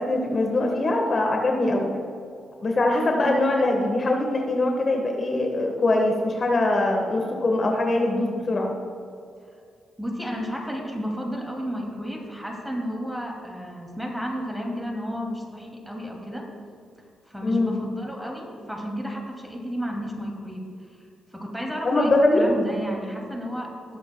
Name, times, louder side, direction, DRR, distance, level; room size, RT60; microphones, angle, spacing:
voice 1, 0.0-1.9 2.6-8.8 17.4-17.7 21.8-22.4, left 2 dB, 45° left, 2 dB, 1.3 m, -22 dB
voice 2, 10.0-16.5 17.3-20.7 21.3-24.0, equal, 5° right, 1 dB, 2.4 m, -32 dB
18.5 x 7.7 x 2.2 m, 2.3 s
hypercardioid pair, 45°, 0 cm